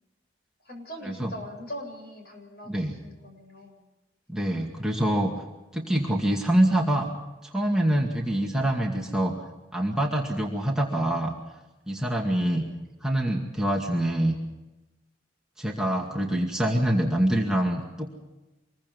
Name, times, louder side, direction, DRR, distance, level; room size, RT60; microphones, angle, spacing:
voice 1, 0.6-3.8 12.4-12.6, equal, 55° left, 2 dB, 7.6 m, -42 dB
voice 2, 2.7-3.0 4.3-5.3 5.7-7.1 7.4-9.3 9.7-11.3 11.9-12.7 13.0-14.4 15.6-18.2, right 1 dB, 5° right, -1 dB, 2.3 m, -25 dB
26.0 x 22.5 x 5.5 m, 1.1 s
head